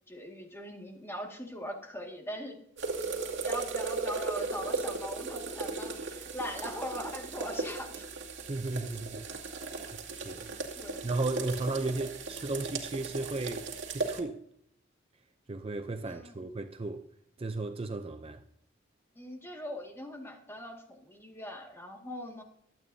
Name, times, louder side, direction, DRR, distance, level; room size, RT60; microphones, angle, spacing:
voice 1, 0.1-2.6 3.4-8.1 10.7-11.1 16.0-16.4 19.2-22.4, equal, 10° left, 1.9 m, -41 dB
sound 1, 2.8-14.2, right 3 dB, 65° right, 2.3 m, -37 dB
voice 2, 8.5-9.2 9.5-9.6 10.1-10.5 11.0-14.4 15.5-17.1 17.4-18.4, right 2 dB, 30° right, 0.5 m, -35 dB
23.5 x 8.9 x 2.7 m
head